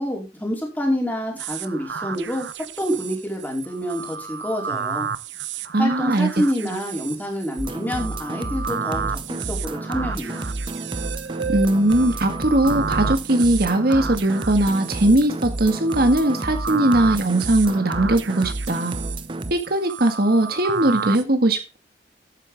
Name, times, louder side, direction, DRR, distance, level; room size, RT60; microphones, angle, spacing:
voice 1, 0.0-2.5 2.8-5.1 5.8-10.4, equal, 10° left, 0 dB, 4.3 m, -27 dB
sound 1, 1.4-21.2, right 6 dB, 85° right, 0.8 m, -32 dB
voice 2, 5.7-6.3 6.6-6.8 11.5-19.0 19.5-21.8, right 1 dB, 60° right, 7 dB, 1.8 m, -20 dB
sound 2, 7.6-19.5, right 2 dB, 30° right, 0.8 m, -31 dB
12.5 x 9.1 x 3.5 m, 0.29 s
head